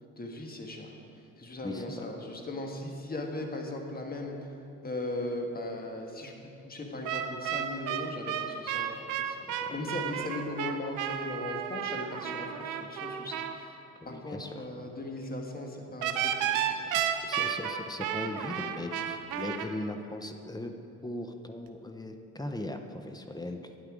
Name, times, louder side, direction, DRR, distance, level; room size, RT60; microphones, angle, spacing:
voice 1, 0.2-0.9 1.4-4.5 4.8-9.4 9.7-13.8 14.0-17.1, left 2 dB, 30° left, 2 dB, 1.5 m, -38 dB
voice 2, 1.6-2.1 9.5-10.3 14.0-14.6 16.8-20.7 21.0-23.7, left 1 dB, 15° left, 5 dB, 0.7 m, -39 dB
sound 1, 7.0-13.5 16.0-19.7, right 9 dB, 85° right, 0.7 m, -32 dB
9.9 x 8.7 x 4.9 m, 2.8 s
cardioid pair, 90°, 30 cm